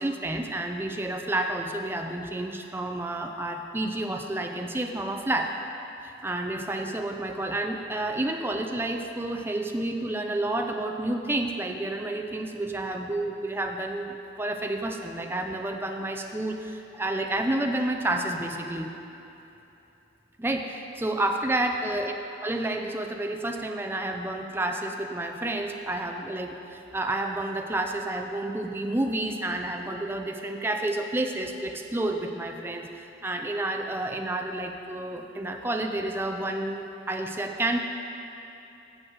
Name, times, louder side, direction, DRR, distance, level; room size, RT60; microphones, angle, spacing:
voice 1, 0.0-5.5 6.0-18.9 20.4-22.2 22.4-37.8, right 1 dB, 10° right, 3 dB, 0.4 m, -30 dB
14.0 x 7.6 x 3.9 m, 2.9 s
head